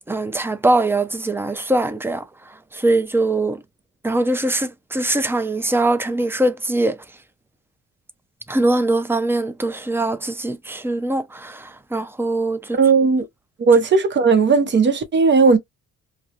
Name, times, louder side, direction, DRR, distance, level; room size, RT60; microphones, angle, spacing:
voice 1, 0.1-2.2 2.7-3.6 4.0-7.0 8.5-12.8, right 2 dB, 10° right, 0.4 m, -22 dB
voice 2, 12.8-13.2 13.6-15.6, right 4 dB, 40° right, 0.7 m, -16 dB
2.2 x 2.0 x 2.8 m
cardioid pair, 90°, 30 cm